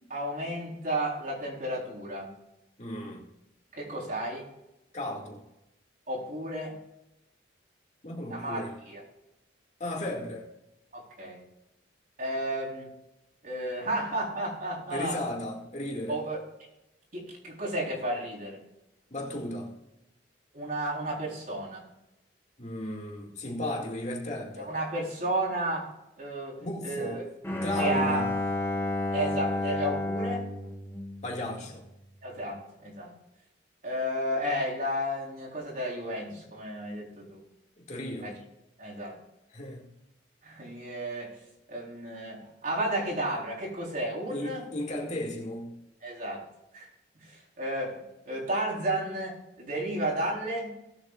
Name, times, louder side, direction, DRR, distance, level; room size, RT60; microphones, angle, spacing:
voice 1, 0.1-2.3 3.7-4.5 6.1-6.8 8.3-9.0 10.9-11.4 12.2-12.9 13.4-15.2 16.1-16.4 17.1-18.6 20.5-21.9 24.6-27.3 27.8-28.3 29.1-30.5 32.2-33.1 33.8-37.4 38.2-38.4 38.8-39.2 40.4-41.3 41.7-44.7 46.0-46.4 46.7-46.9 47.2-50.7, right 1 dB, 45° right, 4.0 m, -32 dB
voice 2, 2.8-3.3 4.9-5.4 8.0-8.7 9.8-10.5 14.9-16.2 19.1-19.7 22.6-24.7 26.6-27.2 27.6-28.3 31.2-31.9 37.9-38.4 39.5-39.9 44.3-45.8, left 1 dB, 40° left, 2.3 m, -35 dB
Bowed string instrument, 27.4-31.8, left 2 dB, 10° left, 1.6 m, -31 dB
18.5 x 8.3 x 2.5 m
head